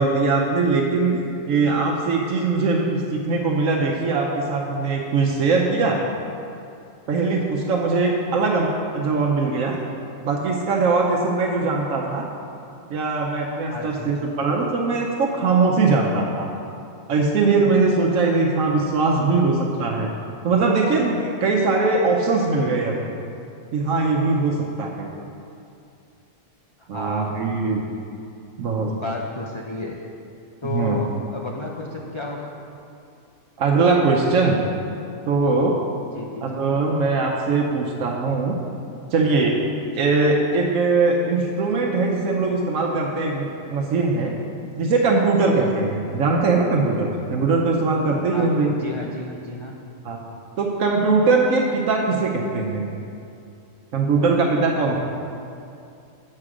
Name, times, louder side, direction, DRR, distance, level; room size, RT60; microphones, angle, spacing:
voice 1, 0.0-6.0 7.1-9.8 10.2-12.2 12.9-16.5 17.1-20.1 20.4-23.0 23.7-25.1 26.9-27.8 28.6-28.9 30.7-31.0 33.6-34.6 35.3-35.8 36.4-38.6 39.1-39.6 39.9-44.3 44.8-48.7 50.0-50.2 50.6-52.9 53.9-55.0, right 3 dB, 80° right, -1 dB, 1.1 m, -21 dB
voice 2, 13.6-14.1 26.8-27.3 28.9-30.0 30.6-32.6 36.1-36.7 48.3-49.8, left 3 dB, 55° left, -1 dB, 0.3 m, -32 dB
7.7 x 6.7 x 4.9 m, 2.6 s
omnidirectional pair, 1.4 m